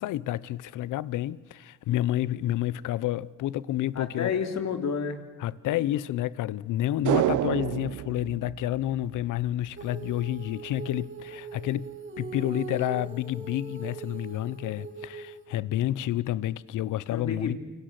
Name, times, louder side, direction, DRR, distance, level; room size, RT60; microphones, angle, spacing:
voice 1, 0.0-4.3 5.4-11.9 12.2-17.6, left 13 dB, 85° left, 0.9 m, -29 dB
voice 2, 4.0-5.2 17.1-17.6, left 6 dB, 60° left, 3.6 m, -30 dB
sound 1, 7.0-9.5 9.8-9.9, right 13 dB, 75° right, 1.0 m, -29 dB
Female singing, 9.8-15.5, right 4 dB, 40° right, 4.3 m, -40 dB
29.0 x 25.0 x 7.9 m
cardioid pair, 90°, 30 cm